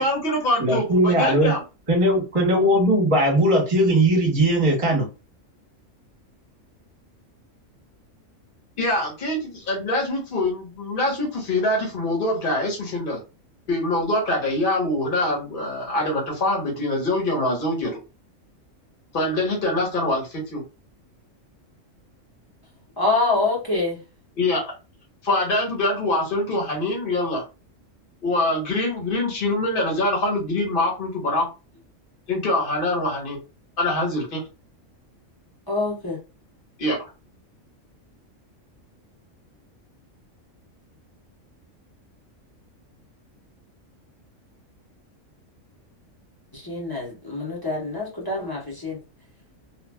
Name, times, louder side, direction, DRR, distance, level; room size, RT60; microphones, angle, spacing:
voice 1, 0.0-1.6 8.8-13.2 13.7-18.0 19.1-20.6 24.4-24.7 25.2-27.4 28.2-31.5 32.3-33.4 33.8-34.4 36.8-37.1, left 1 dB, 45° left, -2 dB, 1.3 m, -24 dB
voice 2, 0.6-1.5 1.9-5.1, right 1 dB, 25° right, 0 dB, 1.0 m, -19 dB
voice 3, 23.0-24.0 35.7-36.2 46.5-49.0, left 3 dB, 20° left, -4 dB, 0.9 m, -25 dB
3.0 x 2.4 x 2.2 m, 0.30 s
omnidirectional pair, 1.4 m